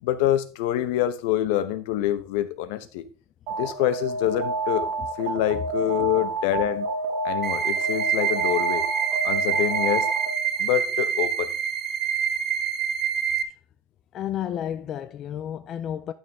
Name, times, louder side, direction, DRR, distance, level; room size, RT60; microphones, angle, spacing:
voice 1, 0.0-3.0 3.6-4.9 5.2-6.9 7.2-8.8 9.2-10.1 10.6-11.5, left 13 dB, 60° left, 0.9 m, -26 dB
Alarm, 3.5-10.5, right 3 dB, 45° right, 1.3 m, -29 dB
sound 1, 7.4-13.4, right 7 dB, 25° right, 0.6 m, -26 dB
voice 2, 14.1-16.1, left 10 dB, 30° left, 0.3 m, -31 dB
11.0 x 6.4 x 3.5 m
cardioid pair, 175°, 0 cm